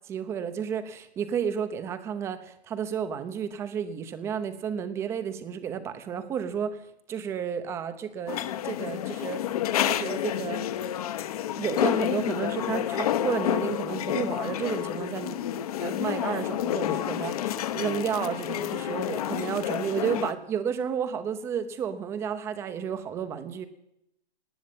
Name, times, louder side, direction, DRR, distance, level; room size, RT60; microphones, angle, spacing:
voice 1, 0.1-6.8 7.1-9.4 9.8-10.7 11.6-15.4 15.8-23.7, right 7 dB, 10° right, 11 dB, 0.8 m, -32 dB
sound 1, 8.3-20.3, left 11 dB, 35° left, 1.0 m, -29 dB
18.0 x 10.5 x 7.3 m, 0.78 s
hypercardioid pair, 160°, 31 cm